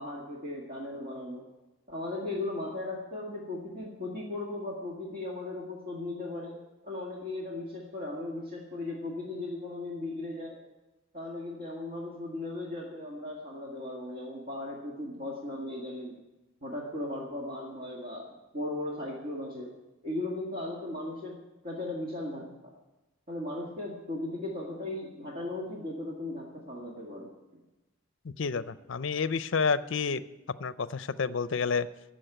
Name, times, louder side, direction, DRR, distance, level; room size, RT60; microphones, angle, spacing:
voice 1, 0.0-1.4 1.9-6.5 6.8-10.6 11.1-16.2 16.6-19.7 20.0-21.4 21.6-22.7 23.3-27.3, left 2 dB, 45° right, -3 dB, 1.8 m, -37 dB
voice 2, 28.2-30.2 30.6-31.9, left 5 dB, 60° left, 15 dB, 0.5 m, -29 dB
14.5 x 6.3 x 9.0 m, 1.0 s
head